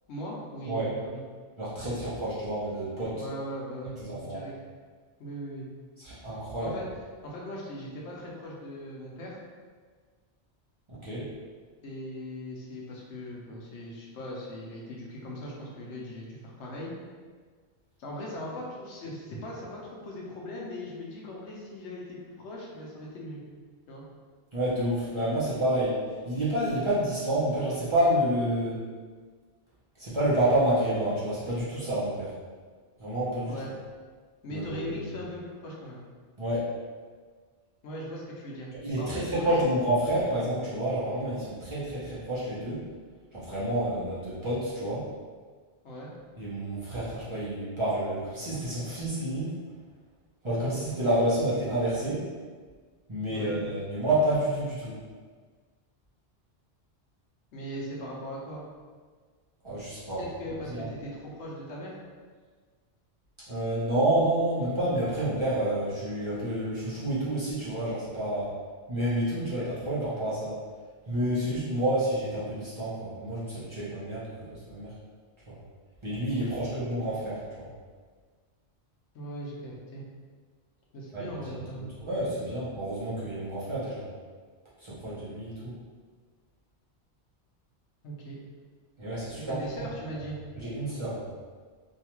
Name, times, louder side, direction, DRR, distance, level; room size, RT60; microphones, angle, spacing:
voice 1, 0.1-1.2 3.2-4.5 5.2-5.7 6.6-6.9 7.2-9.4 11.8-16.9 18.0-23.4 23.9-24.0 33.5-33.7 34.4-36.0 37.8-39.7 45.8-46.1 53.3-53.5 57.5-58.6 60.2-62.0 76.3-76.9 79.1-80.0 80.9-81.9 88.0-88.4 89.4-90.4, equal, 90° left, -3 dB, 1.0 m, -39 dB
voice 2, 1.6-3.2 4.0-4.4 6.0-6.7 10.9-11.3 24.5-26.0 26.2-28.8 30.0-32.3 33.0-33.5 34.5-35.0 36.4-36.7 38.8-42.8 43.3-45.0 46.4-49.5 50.4-52.2 53.1-55.0 59.6-60.2 60.5-60.9 63.5-68.5 68.9-70.6 71.1-74.9 75.5-75.6 76.0-77.7 81.1-84.1 84.8-85.7 89.0-89.9 90.6-91.3, right 1 dB, 35° right, -10 dB, 0.6 m, -29 dB
2.8 x 2.3 x 2.9 m, 1.5 s
omnidirectional pair, 1.1 m